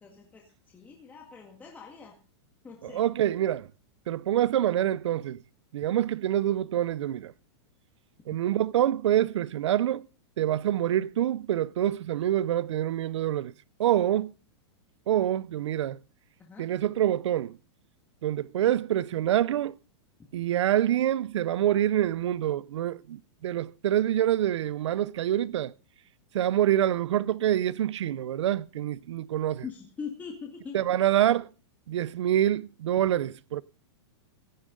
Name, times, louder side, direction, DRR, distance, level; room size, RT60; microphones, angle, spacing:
voice 1, 0.0-2.1 2.6-3.0 16.4-16.7 29.6-30.8, left 6 dB, 10° left, 1.9 m, -42 dB
voice 2, 2.8-3.7 4.1-5.4 5.7-7.3 8.3-10.1 10.4-13.5 13.8-14.3 15.1-16.0 16.6-17.5 18.2-19.8 20.3-25.7 26.3-29.6 30.7-31.5 31.9-33.6, right 11 dB, 85° right, 0.7 m, -26 dB
16.5 x 11.5 x 3.8 m
supercardioid pair, 160°, 15 cm